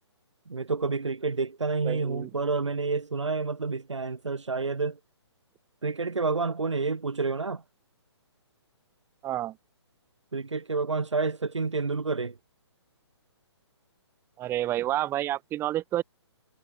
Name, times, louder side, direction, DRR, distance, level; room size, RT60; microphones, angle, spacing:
voice 1, 0.5-5.0 5.8-7.6 10.3-12.4, right 4 dB, 85° right, 4.7 m, -29 dB
voice 2, 1.8-2.3 9.2-9.5 14.4-16.0, right 13 dB, 15° right, 1.5 m, -29 dB
hypercardioid pair, 145°, 15 cm